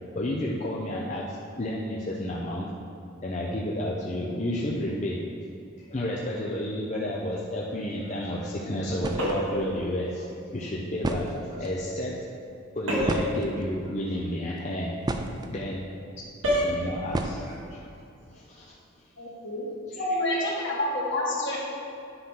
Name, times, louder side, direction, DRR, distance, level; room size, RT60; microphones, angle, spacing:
voice 1, 0.1-2.7 3.2-5.2 5.9-12.2 12.7-14.9 15.5-15.9 16.6-17.9 18.3-18.7 19.9-20.0 20.3-20.4, left 1 dB, 35° left, -4 dB, 0.6 m, -31 dB
sound 1, 8.7-8.8 9.0-9.4 10.6-10.7 11.0-11.8 13.1-13.9 14.6-15.5 17.1-17.7, right 2 dB, 20° right, 0.3 m, -31 dB
sound 2, 9.2-9.7 12.9-13.3 16.4-16.8, equal, 80° right, 1.7 m, -26 dB
voice 2, 19.2-19.7 19.9-21.6, left 1 dB, 60° left, -5 dB, 2.0 m, -28 dB
10.0 x 5.8 x 3.8 m, 2.5 s
head